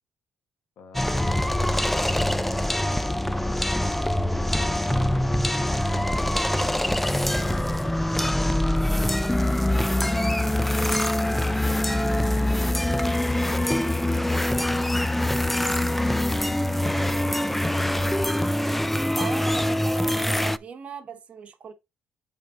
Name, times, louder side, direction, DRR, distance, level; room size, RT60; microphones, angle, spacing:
voice 1, 0.8-3.6 4.3-9.0 9.6-10.6 10.9-12.9 13.4-16.1 16.6-17.8, left 7 dB, 70° left, 1.5 m, -48 dB
sound 1, 0.9-20.6, left 1 dB, 5° left, 0.3 m, -24 dB
Motor vehicle (road) / Siren, 9.5-13.8, left 2 dB, 35° left, 2.0 m, -50 dB
voice 2, 19.1-21.7, right 6 dB, 40° right, 1.1 m, -38 dB
7.5 x 3.8 x 3.7 m
cardioid pair, 110°, 3 cm